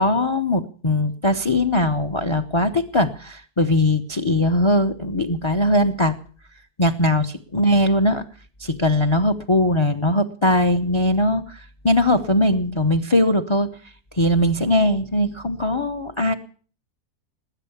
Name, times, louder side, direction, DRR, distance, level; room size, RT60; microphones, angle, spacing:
voice 1, 0.0-6.2 6.8-8.2 8.6-13.7 14.1-16.3, left 1 dB, 25° left, 9 dB, 0.7 m, -20 dB
20.0 x 8.9 x 7.0 m, 0.43 s
omnidirectional pair, 1.7 m